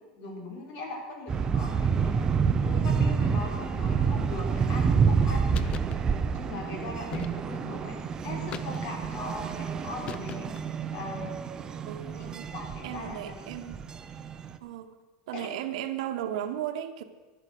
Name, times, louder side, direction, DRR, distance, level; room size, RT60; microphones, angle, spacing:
voice 1, 0.1-2.2 2.6-5.7 6.3-8.0 8.2-10.5 10.9-11.3 12.2-13.5 15.3-15.6, left 2 dB, 50° left, 2 dB, 3.8 m, -40 dB
sound 1, 1.3-14.6, right 6 dB, 20° right, 0.7 m, -28 dB
sound 2, 5.5-6.0 7.1-7.7 8.5-9.1 10.1-10.7, left 8 dB, 30° left, 0.5 m, -39 dB
voice 2, 11.8-12.5 12.8-13.8 14.6-14.9 15.3-17.0, right 11 dB, 75° right, 8 dB, 1.1 m, -35 dB
11.0 x 9.7 x 7.8 m, 1.3 s
supercardioid pair, 145°, 3 cm